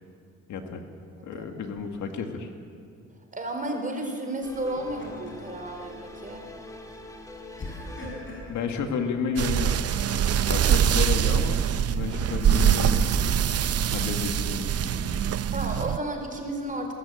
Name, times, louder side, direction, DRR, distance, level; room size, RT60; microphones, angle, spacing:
voice 1, 0.5-0.8 1.2-2.5 8.5-9.8 10.5-11.6 11.9-13.4 13.9-15.3, left 5 dB, 75° left, 5 dB, 2.1 m, -31 dB
Laughter, 1.7-2.3 4.6-5.5 5.9-6.1 7.6-8.7 10.3-11.3 12.4-13.6, left 1 dB, 40° left, 6.8 m, -43 dB
voice 2, 3.3-6.5 15.5-16.9, right 1 dB, 25° right, 3 dB, 4.5 m, -32 dB
sound 1, 4.4-9.9, left 1 dB, 10° left, 2.7 m, -45 dB
sound 2, 9.4-16.0, right 9 dB, 55° right, 0.8 m, -24 dB
22.5 x 14.5 x 9.0 m, 2.3 s
cardioid pair, 90°, 30 cm